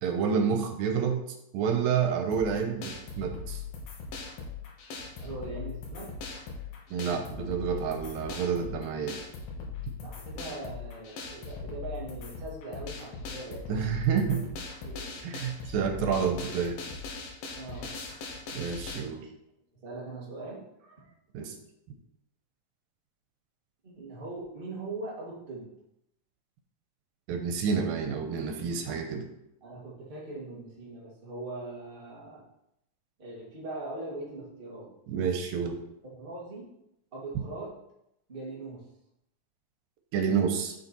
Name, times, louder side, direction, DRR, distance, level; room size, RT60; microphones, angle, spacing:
voice 1, 0.0-1.2 1.5-3.6 6.9-9.2 13.7-14.4 15.2-16.8 18.5-19.3 21.3-21.5 27.3-29.2 35.1-35.8 40.1-40.8, right 6 dB, 85° right, 4 dB, 2.7 m, -29 dB
sound 1, 2.3-19.0, left 5 dB, 85° left, 3.1 m, -40 dB
voice 2, 5.2-6.2 10.0-13.9 14.3-14.4 14.8-15.2 17.5-18.1 19.8-21.1 23.8-25.7 29.6-32.4 33.2-34.9 36.0-36.7 37.1-37.8 38.3-38.9, right 2 dB, 20° right, -5 dB, 1.6 m, -41 dB
7.0 x 6.6 x 4.5 m, 0.81 s
omnidirectional pair, 4.0 m